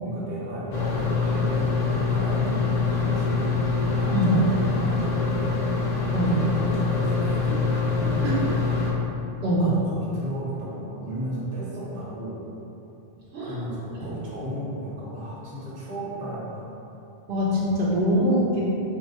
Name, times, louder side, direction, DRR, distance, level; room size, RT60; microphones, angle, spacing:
voice 1, 0.0-3.6 4.0-5.6 6.3-9.0 9.6-12.4 13.4-16.6, equal, 50° right, -6 dB, 1.0 m, -34 dB
sound 1, 0.7-8.9, left 4 dB, 50° left, 0.6 m, -25 dB
voice 2, 9.4-9.7 13.3-13.6 17.3-18.6, equal, 80° right, -6 dB, 0.9 m, -23 dB
3.5 x 2.6 x 4.1 m, 2.8 s
omnidirectional pair, 1.0 m